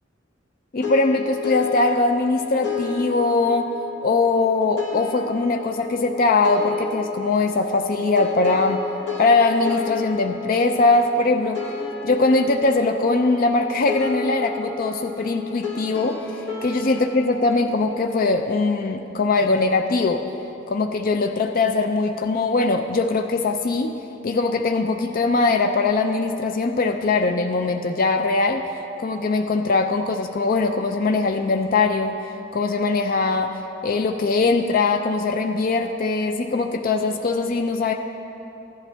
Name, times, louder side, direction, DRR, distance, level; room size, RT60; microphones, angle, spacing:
voice 1, 0.7-3.7 4.0-8.8 9.2-11.6 12.0-20.2 20.7-23.9 24.2-28.7 29.0-32.2 32.5-33.6 33.8-37.9, left 3 dB, 45° left, 5 dB, 0.4 m, -21 dB
sound 1, 0.8-17.3, left 5 dB, 60° left, 1.6 m, -32 dB
16.0 x 11.0 x 3.4 m, 3.0 s
head